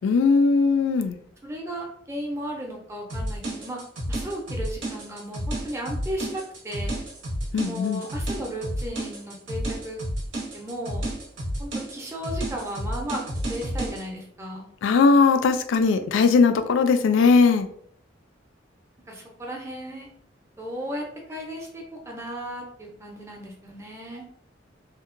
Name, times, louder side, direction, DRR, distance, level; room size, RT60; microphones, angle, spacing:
voice 1, 0.0-1.2 7.5-8.0 14.8-17.7, left 4 dB, 85° left, 9 dB, 0.3 m, -19 dB
voice 2, 1.4-3.8 4.1-7.0 7.6-10.0 10.5-11.1 11.6-13.2 13.5-14.7 19.1-20.1 20.6-24.2, equal, 15° right, -1 dB, 0.5 m, -35 dB
sound 1, 3.1-14.0, right 1 dB, 90° right, 0.7 m, -31 dB
2.7 x 2.1 x 2.5 m, 0.63 s
head